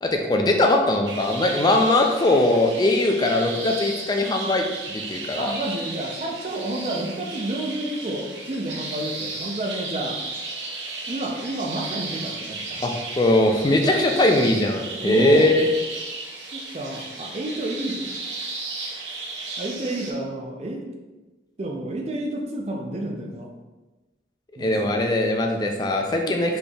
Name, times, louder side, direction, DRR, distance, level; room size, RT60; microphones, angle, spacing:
voice 1, 0.0-5.5 12.8-15.7 24.6-26.6, left 1 dB, 25° left, 3 dB, 0.4 m, -20 dB
sound 1, 1.1-20.1, right 3 dB, 85° right, 0.7 m, -34 dB
voice 2, 5.4-10.2 11.1-12.9 15.0-15.5 16.5-18.2 18.9-19.0 19.6-20.9 21.6-23.5 24.6-25.0 26.3-26.4, right 1 dB, 35° right, 1 dB, 0.5 m, -30 dB
4.2 x 3.3 x 2.3 m, 1.2 s
head